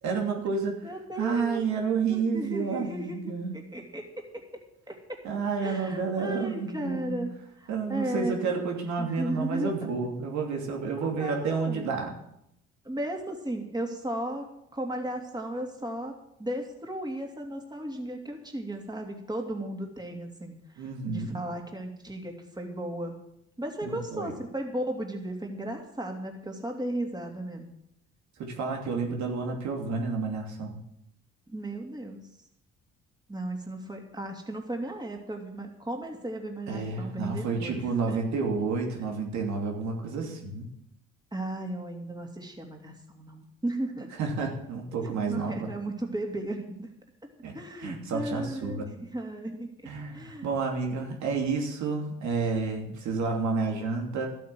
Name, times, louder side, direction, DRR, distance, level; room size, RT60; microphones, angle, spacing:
voice 1, 0.0-0.8 1.2-3.6 5.2-7.2 7.7-12.2 20.8-21.4 23.8-24.4 28.4-30.8 36.7-40.7 44.2-45.7 47.4-47.5 47.8-48.9 49.9-54.3, right 4 dB, 70° right, 1 dB, 2.8 m, -30 dB
voice 2, 0.8-1.6 2.1-4.0 4.9-5.0 5.6-8.4 9.0-9.7 11.0-11.9 12.8-16.1 16.4-23.1 23.6-27.7 31.5-32.3 33.3-38.2 41.3-44.1 45.0-46.9 47.5-49.7 50.1-50.5, right 1 dB, 15° right, 2 dB, 2.9 m, -35 dB
12.5 x 8.6 x 7.8 m, 0.79 s
supercardioid pair, 75°, 29 cm